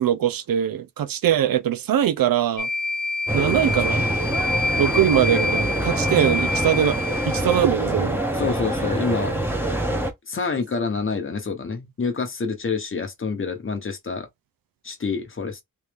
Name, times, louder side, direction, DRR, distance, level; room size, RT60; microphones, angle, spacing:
voice 1, 0.0-2.7 3.3-4.1 4.8-8.2, right 10 dB, 90° right, 0.5 m, -22 dB
sound 1, 2.6-7.6, left 3 dB, 65° left, 0.6 m, -27 dB
sound 2, 3.3-10.1, right 1 dB, 5° right, 0.9 m, -25 dB
voice 2, 8.3-9.4 10.3-14.3 14.8-15.6, left 4 dB, 40° left, 1.0 m, -27 dB
3.1 x 2.6 x 3.4 m
wide cardioid pair, 110°, 33 cm